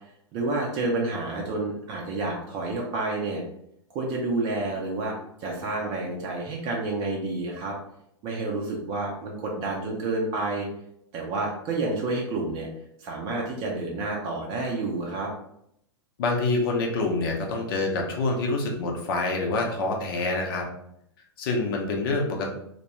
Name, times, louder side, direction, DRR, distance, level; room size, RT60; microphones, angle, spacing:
voice 1, 0.3-3.4 3.9-5.1 5.4-7.8 8.2-10.7 11.1-12.7 13.0-15.3, right 2 dB, 35° right, -1 dB, 0.5 m, -29 dB
voice 2, 16.2-20.7 21.4-22.5, left 3 dB, 55° left, 1 dB, 0.7 m, -26 dB
2.2 x 2.2 x 2.9 m, 0.75 s
figure-of-eight pair, 95°, 14 cm